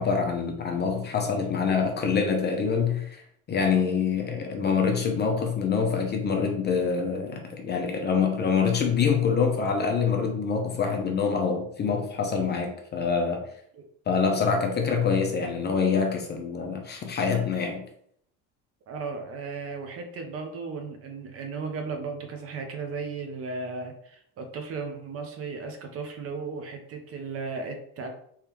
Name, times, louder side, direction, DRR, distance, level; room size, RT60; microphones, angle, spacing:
voice 1, 0.0-3.2 3.5-13.5 14.1-17.8, left 5 dB, 25° left, 3 dB, 0.7 m, -25 dB
voice 2, 18.9-28.1, right 4 dB, 40° right, 5 dB, 0.8 m, -35 dB
3.6 x 3.2 x 3.0 m, 0.67 s
supercardioid pair, 120°, 37 cm